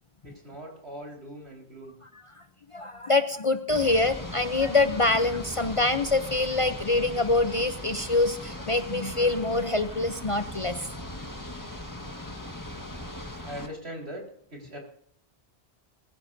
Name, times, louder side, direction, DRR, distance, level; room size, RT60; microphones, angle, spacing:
voice 1, 0.2-2.0 11.8-14.2 14.5-14.8, equal, 75° right, -1 dB, 4.5 m, -42 dB
voice 2, 2.7-10.9, left 2 dB, 35° left, 9 dB, 0.6 m, -25 dB
sound 1, 3.7-13.7, left 1 dB, 20° left, 1.7 m, -39 dB
21.5 x 15.5 x 2.7 m, 0.64 s
omnidirectional pair, 1.1 m